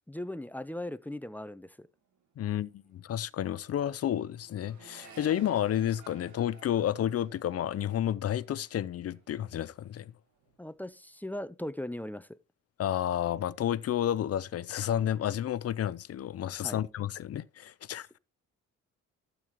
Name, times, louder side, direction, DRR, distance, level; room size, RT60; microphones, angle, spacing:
voice 1, 0.1-1.9 10.6-12.3 16.6-16.8, left 1 dB, 5° left, 0.5 m, -38 dB
Accelerating revving vroom, 2.0-2.2 2.5-10.0 10.3-10.9, right 7 dB, 70° right, 1.7 m, -56 dB
voice 2, 2.4-10.1 12.8-18.2, left 11 dB, 55° left, 0.6 m, -31 dB
12.5 x 8.2 x 3.0 m
cardioid pair, 90°, 30 cm